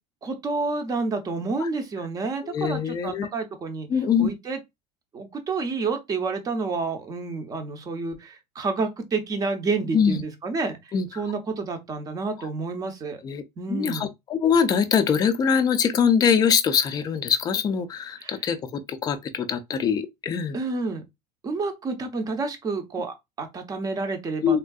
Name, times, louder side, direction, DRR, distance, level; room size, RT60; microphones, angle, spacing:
voice 1, 0.2-3.9 4.2-4.6 5.1-13.2 13.6-14.1 18.2-18.4 20.5-21.0 21.4-24.6, right 4 dB, 20° right, 0.6 m, -29 dB
voice 2, 2.4-3.3 3.9-4.3 9.9-10.2 10.9-11.1 13.2-13.4 13.7-20.6 24.4-24.6, left 7 dB, 25° left, 0.4 m, -23 dB
3.5 x 2.5 x 2.3 m
cardioid pair, 155°, 16 cm